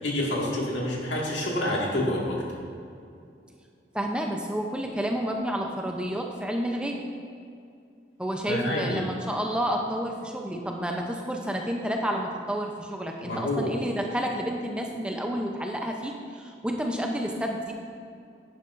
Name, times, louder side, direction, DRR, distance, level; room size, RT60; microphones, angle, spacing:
voice 1, 0.0-2.6 8.5-9.1 13.2-13.7, left 1 dB, 80° left, -3 dB, 1.9 m, -28 dB
voice 2, 3.9-7.0 8.2-17.7, equal, 5° right, 1 dB, 0.5 m, -30 dB
10.5 x 9.6 x 2.5 m, 2.4 s
head